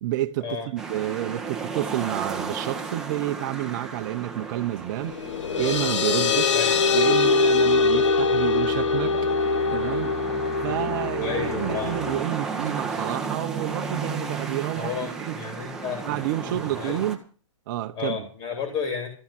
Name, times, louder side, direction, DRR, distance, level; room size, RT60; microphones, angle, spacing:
voice 1, 0.0-5.2 5.6-6.5 6.9-9.2 9.7-10.2 10.6-14.9 15.2-15.4 16.1-17.2 17.7-18.2, right 14 dB, 40° right, 1.1 m, -29 dB
sound 1, 0.8-17.2, right 4 dB, 5° right, 1.5 m, -35 dB
sound 2, 5.0-12.2, left 4 dB, 65° left, 1.3 m, -23 dB
voice 2, 11.2-11.9 14.8-17.0 17.9-19.1, left 6 dB, 30° left, 3.0 m, -32 dB
14.0 x 7.1 x 9.0 m
hypercardioid pair, 155°, 16 cm